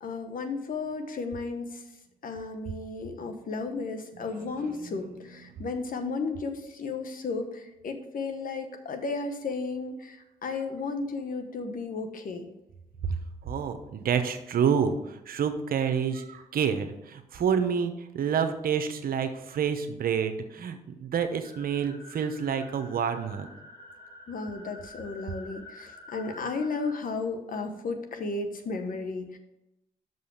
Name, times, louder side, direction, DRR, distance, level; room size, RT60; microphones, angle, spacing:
voice 1, 0.0-1.8 2.2-12.5 24.3-29.4, left 4 dB, 60° left, 6 dB, 1.2 m, -34 dB
voice 2, 4.2-5.3 13.4-23.5, right 7 dB, 65° right, 8 dB, 0.9 m, -29 dB
sound 1, 21.4-26.9, left 2 dB, 30° left, 2.3 m, -49 dB
6.2 x 5.4 x 6.6 m, 0.90 s
supercardioid pair, 50°, 16 cm